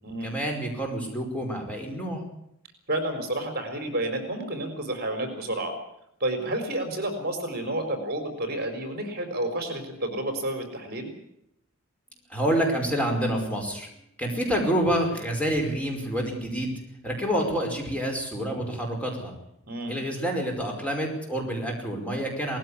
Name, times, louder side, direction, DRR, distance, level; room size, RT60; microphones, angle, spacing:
voice 1, 0.2-2.2 12.3-13.9 14.2-19.3 19.9-22.6, equal, 5° left, 1 dB, 5.0 m, -28 dB
voice 2, 2.9-5.7 6.2-11.1 19.6-19.9, right 1 dB, 45° right, 7 dB, 4.5 m, -30 dB
19.5 x 15.5 x 9.8 m, 0.77 s
head